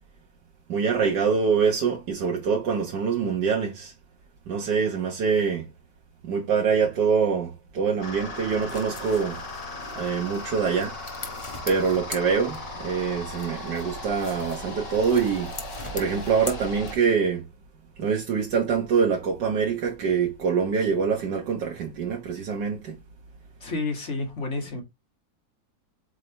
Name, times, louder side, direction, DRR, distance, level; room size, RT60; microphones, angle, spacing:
voice 1, 0.7-3.9 4.5-5.7 6.2-9.4 10.0-11.0 11.7-15.5 15.9-17.5 18.0-23.0, right 6 dB, 75° right, 1.7 m, -25 dB
sound 1, 8.0-17.0, left 2 dB, 80° left, 2.8 m, -37 dB
sound 2, 8.4-12.9 13.3-17.3, left 2 dB, 20° left, 1.1 m, -42 dB
voice 2, 23.6-24.8, left 3 dB, 40° left, 2.4 m, -30 dB
8.3 x 3.7 x 3.3 m
omnidirectional pair, 1.9 m